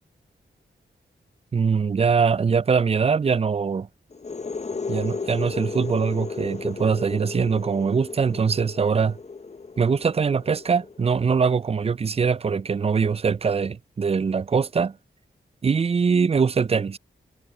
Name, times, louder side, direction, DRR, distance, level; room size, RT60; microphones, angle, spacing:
voice 1, 1.5-3.9 4.9-9.2 9.8-15.0 15.6-17.0, right 5 dB, 30° right, 0.4 m, -22 dB
sound 1, 4.1-11.7, left 4 dB, 35° left, 0.8 m, -35 dB
cardioid pair, 40°, 20 cm